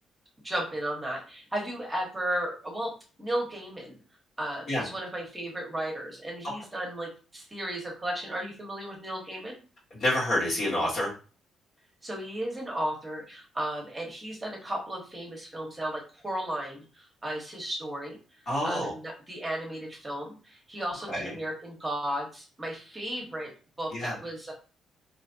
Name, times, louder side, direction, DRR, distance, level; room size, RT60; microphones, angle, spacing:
voice 1, 0.4-2.9 3.2-4.0 4.4-9.6 12.0-18.2 18.6-23.5 23.8-24.5, right 1 dB, 15° right, -1 dB, 1.1 m, -34 dB
voice 2, 9.9-11.1 18.5-18.9 21.1-21.3 23.9-24.1, left 1 dB, 55° left, -6 dB, 1.8 m, -28 dB
3.3 x 2.9 x 2.7 m, 0.37 s
cardioid pair, 90°, 0 cm